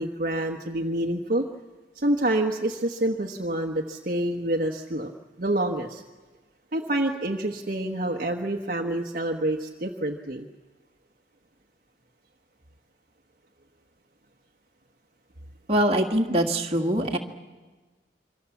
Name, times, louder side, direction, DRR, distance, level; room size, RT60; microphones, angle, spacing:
voice 1, 0.0-1.5 1.9-5.1 5.4-6.0 6.7-10.5, right 1 dB, 50° right, 2 dB, 1.3 m, -27 dB
voice 2, 15.7-17.2, right 1 dB, 35° right, 1 dB, 2.0 m, -23 dB
27.0 x 24.5 x 7.2 m, 1.3 s
head